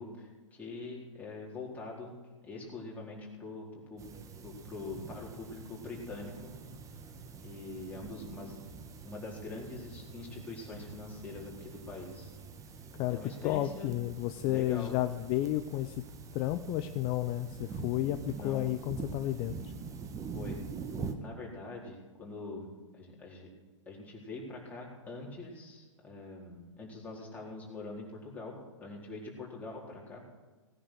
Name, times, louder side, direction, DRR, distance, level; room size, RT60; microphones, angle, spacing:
voice 1, 0.0-2.2 2.4-4.2 4.4-6.5 7.4-8.6 9.0-12.4 13.1-13.9 14.4-15.0 18.3-18.7 20.3-20.6 21.2-23.5 23.9-30.2, left 3 dB, 10° left, -4 dB, 4.3 m, -44 dB
sound 1, 4.0-21.1, right 4 dB, 20° right, 1.4 m, -45 dB
voice 2, 12.9-16.0 16.3-19.6, left 14 dB, 30° left, 10 dB, 0.6 m, -32 dB
18.0 x 9.9 x 6.5 m, 1.3 s
figure-of-eight pair, 110°, 16 cm